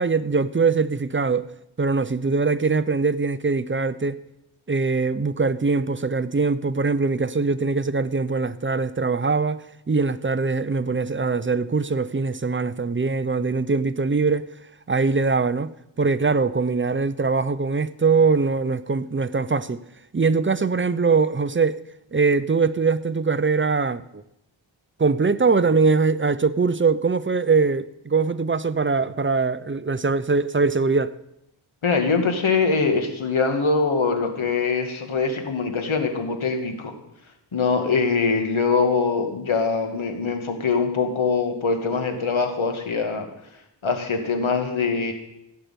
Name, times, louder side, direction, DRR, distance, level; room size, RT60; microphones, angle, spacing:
voice 1, 0.0-1.5 1.8-4.2 4.7-14.4 14.9-15.7 16.0-19.8 20.1-21.8 22.1-24.2 25.0-31.1, right 4 dB, 25° right, 0.6 m, -22 dB
voice 2, 31.8-36.9 37.5-43.2 43.8-45.1, left 4 dB, 80° left, 2.2 m, -23 dB
16.0 x 6.7 x 9.2 m
wide cardioid pair, 85°, 47 cm